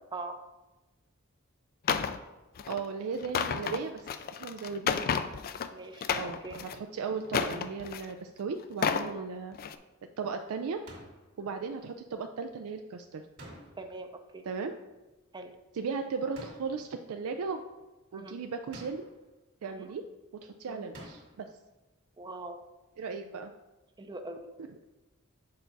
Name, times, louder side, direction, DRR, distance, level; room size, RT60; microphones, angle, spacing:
sound 1, 1.9-2.2 2.6-2.8 3.2-5.7 6.0-6.8 7.3-8.1 8.6-9.1 9.5-9.8, left 6 dB, 45° left, 0.3 m, -31 dB
voice 1, 2.7-4.1 4.4-5.1 6.1-9.5 10.2-10.8 11.4-13.2 14.4-14.7 15.7-17.6 18.1-19.1 19.6-20.0 20.4-21.5 23.0-23.5, right 5 dB, 75° right, 6 dB, 0.4 m, -36 dB
voice 2, 5.7-6.6 9.1-9.3 13.8-14.1 14.3-14.4 15.3-15.5 18.1-18.4 19.6-19.9 20.7-20.8 22.2-22.6 24.0-24.5, right 2 dB, 20° right, 6 dB, 0.5 m, -42 dB
sound 2, 10.9-11.3 13.4-14.0 16.3-16.9 18.7-19.3 20.9-21.5, right 1 dB, 55° right, 2.1 m, -49 dB
6.7 x 4.5 x 4.0 m, 1.1 s
head